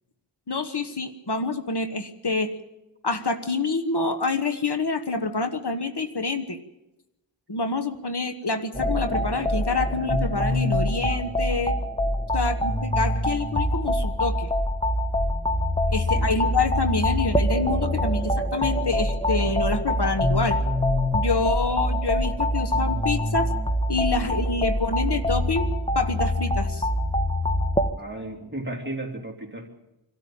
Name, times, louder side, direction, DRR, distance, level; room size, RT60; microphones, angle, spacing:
voice 1, 0.5-2.5 3.0-6.6 7.5-11.7 12.3-14.5 15.9-20.6 21.1-23.5 23.9-25.7 25.9-26.9, left 3 dB, 60° left, 8 dB, 1.4 m, -27 dB
sound 1, 8.7-27.9, left 1 dB, 15° left, 1.2 m, -24 dB
voice 2, 16.0-16.4 28.0-29.7, right 1 dB, 25° right, 1 dB, 3.2 m, -36 dB
24.5 x 13.0 x 8.8 m, 0.96 s
wide cardioid pair, 45°, 46 cm